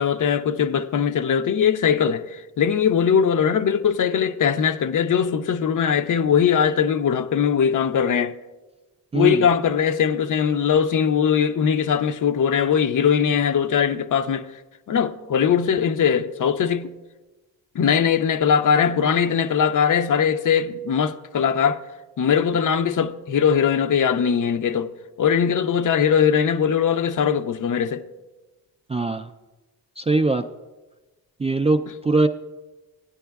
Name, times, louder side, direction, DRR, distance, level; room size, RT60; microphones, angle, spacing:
voice 1, 0.0-8.3 9.1-14.5 14.9-16.9 17.7-21.8 22.2-24.9 25.2-28.1, left 7 dB, 50° left, 0.6 m, -20 dB
voice 2, 9.1-9.5 28.9-29.3 30.0-30.4 31.4-32.3, right 3 dB, 15° right, 0.3 m, -21 dB
15.5 x 9.8 x 2.3 m
supercardioid pair, 55°, 41 cm